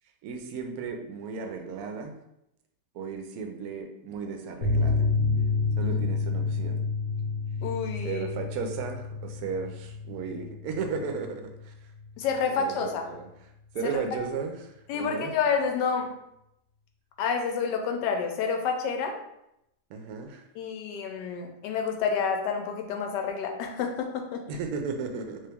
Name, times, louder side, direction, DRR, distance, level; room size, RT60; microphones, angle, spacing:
voice 1, 0.2-2.1 2.9-5.0 5.8-6.8 8.0-11.7 12.5-13.3 13.7-15.3 19.9-20.4 24.5-25.4, right 5 dB, 70° right, 4 dB, 1.0 m, -35 dB
sound 1, 4.6-11.7 12.0-12.1 12.4-12.5, left 4 dB, 70° left, 1.4 m, -29 dB
voice 2, 7.6-8.3 12.2-13.0 13.8-14.0 14.9-16.1 17.2-19.2 20.5-24.4, left 6 dB, 90° left, 3 dB, 1.2 m, -29 dB
3.0 x 2.9 x 3.4 m, 0.83 s
omnidirectional pair, 1.8 m